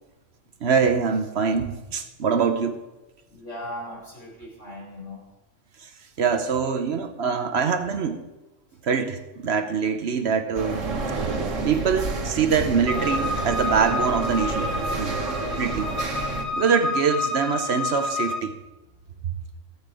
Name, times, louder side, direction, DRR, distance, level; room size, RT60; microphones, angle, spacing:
voice 1, 0.6-2.8 5.8-5.9 6.2-8.2 8.8-10.9 11.2-11.3 11.6-14.7 15.0-15.2 15.4-15.9 16.5-18.6, right 6 dB, 60° right, 7 dB, 1.0 m, -24 dB
voice 2, 3.3-5.2 15.1-15.3, left 1 dB, 70° left, -5 dB, 5.8 m, -38 dB
sound 1, 10.5-16.4, right 3 dB, 80° right, 1.8 m, -30 dB
sound 2, 12.9-18.4, left 2 dB, 25° left, 1.7 m, -29 dB
14.0 x 8.5 x 4.9 m, 1.1 s
omnidirectional pair, 1.3 m